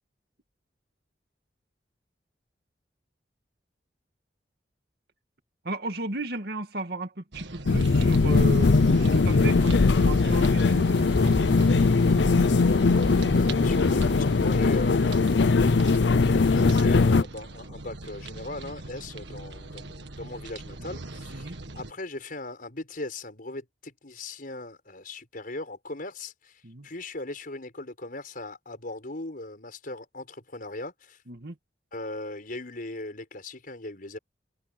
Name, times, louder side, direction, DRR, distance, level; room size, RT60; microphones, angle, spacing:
voice 1, 5.6-11.9 20.9-21.0 21.3-21.6 26.6-26.9 31.3-31.6, right 1 dB, 60° right, 2.3 m, -35 dB
sound 1, 7.3-21.9, right 2 dB, 85° right, 1.7 m, -41 dB
sound 2, 7.7-17.2, left 3 dB, 85° left, 0.6 m, -20 dB
voice 2, 13.3-15.5 16.1-31.2 31.9-34.2, left 2 dB, 55° left, 5.6 m, -39 dB
head